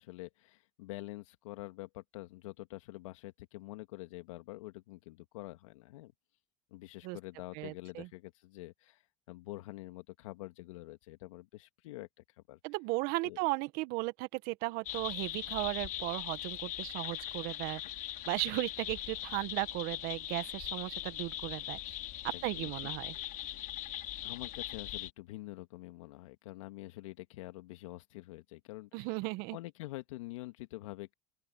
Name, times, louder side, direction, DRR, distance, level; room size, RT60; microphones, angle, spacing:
voice 1, 0.0-6.1 6.7-9.0 9.3-12.6 13.2-13.4 22.3-22.9 24.2-29.1 29.5-31.1, left 19 dB, 80° left, 2.3 m, -46 dB
voice 2, 7.5-8.1 12.6-17.8 18.3-22.0 22.2-23.1 28.9-29.6, right 23 dB, 70° right, 1.6 m, -36 dB
sound 1, 14.8-25.1, left 14 dB, 55° left, 4.8 m, -40 dB
open air
hypercardioid pair, 75°, 16 cm